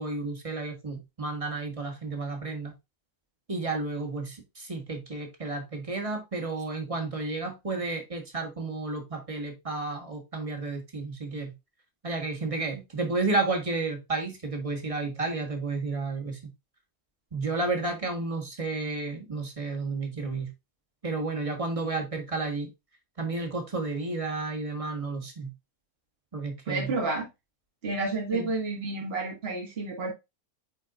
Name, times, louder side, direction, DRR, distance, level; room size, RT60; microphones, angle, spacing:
voice 1, 0.0-2.7 3.5-11.5 12.0-16.4 17.3-20.5 21.0-22.7 23.2-25.5 26.3-26.9 28.3-28.5, right 3 dB, 20° right, 1.5 m, -32 dB
voice 2, 26.7-27.3 27.8-30.1, right 3 dB, 40° right, 1.9 m, -30 dB
8.8 x 4.2 x 2.5 m
omnidirectional pair, 1.6 m